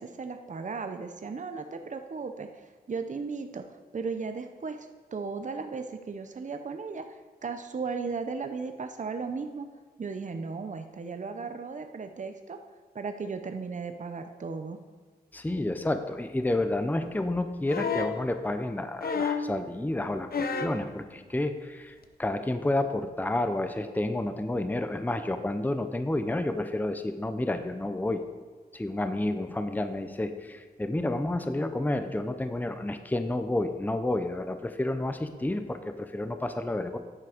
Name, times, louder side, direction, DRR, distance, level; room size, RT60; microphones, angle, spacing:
voice 1, 0.0-9.7 10.0-12.6 12.9-14.8, right 4 dB, 50° right, 7 dB, 0.7 m, -36 dB
voice 2, 15.3-28.2 28.7-37.0, left 1 dB, 10° left, 8 dB, 0.6 m, -30 dB
sound 1, 17.7-18.2 19.0-19.6 20.3-20.8 22.0-22.1, left 5 dB, 70° left, 0.8 m, -30 dB
9.8 x 7.3 x 5.1 m, 1.4 s
wide cardioid pair, 90°, 16 cm